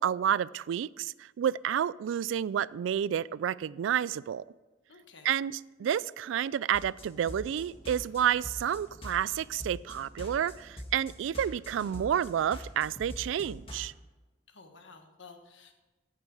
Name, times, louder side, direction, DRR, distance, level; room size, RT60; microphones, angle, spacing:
voice 1, 0.0-4.4 5.2-13.9, right 9 dB, 90° right, 21 dB, 0.3 m, -30 dB
voice 2, 4.9-5.3 14.5-15.7, left 4 dB, 80° left, 5 dB, 1.4 m, -53 dB
sound 1, 6.7-13.9, equal, 30° left, 1.8 m, -44 dB
14.0 x 6.7 x 4.8 m, 1.2 s
head